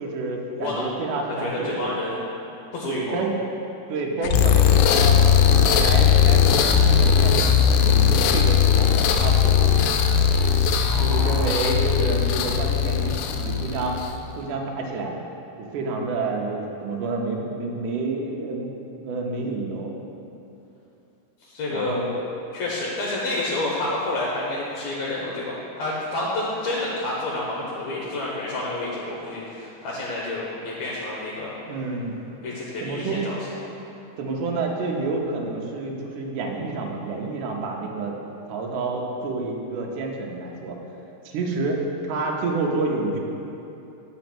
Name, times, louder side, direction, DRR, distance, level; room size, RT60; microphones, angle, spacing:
voice 1, 0.0-1.9 2.9-3.3 3.9-8.9 9.2-9.7 11.0-14.0 14.4-15.2 15.6-18.7 19.0-19.9 21.7-22.1 31.6-32.1 32.8-33.2 34.2-38.2 38.5-40.8 41.3-43.2, right 3 dB, 75° right, 0 dB, 2.3 m, -29 dB
voice 2, 0.5-0.8 1.4-2.2 2.7-3.2 10.9-11.5 21.4-21.9 22.5-31.5 32.4-33.4, left 2 dB, 70° left, -4 dB, 2.0 m, -29 dB
sound 1, 4.2-14.2, left 7 dB, 85° left, 2.1 m, -18 dB
8.1 x 5.2 x 5.9 m, 2.8 s
omnidirectional pair, 3.8 m